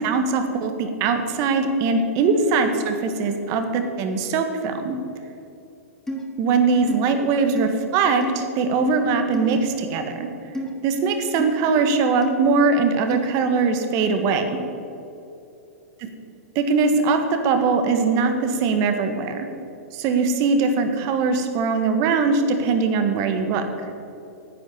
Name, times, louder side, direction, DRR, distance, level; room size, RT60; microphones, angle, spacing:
voice 1, 0.0-4.9 6.4-10.3 10.8-14.5 16.0-16.1 16.5-19.5 19.9-23.6, right 4 dB, 40° right, 7 dB, 1.5 m, -21 dB
sound 1, 6.1-6.2 6.9-7.0 7.6-7.7 8.2-8.4 9.3-9.6 10.5-10.7 11.4-11.5 12.2-12.3 13.1-13.3, equal, 5° left, 1.4 m, -28 dB
10.0 x 8.7 x 7.0 m, 2.8 s
hypercardioid pair, 115°, 8 cm